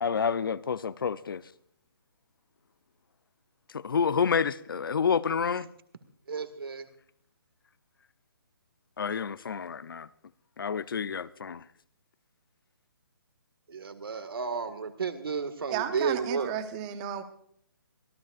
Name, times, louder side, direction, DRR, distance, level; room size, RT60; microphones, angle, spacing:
voice 1, 0.0-1.4 3.7-5.7 9.0-10.1 10.6-11.6, left 6 dB, 65° left, 0.7 m, -29 dB
voice 2, 6.3-6.9 13.7-16.5, right 5 dB, 75° right, 1.9 m, -32 dB
voice 3, 15.7-17.2, right 10 dB, 15° right, 0.9 m, -33 dB
25.0 x 15.0 x 2.5 m
hypercardioid pair, 165°, 12 cm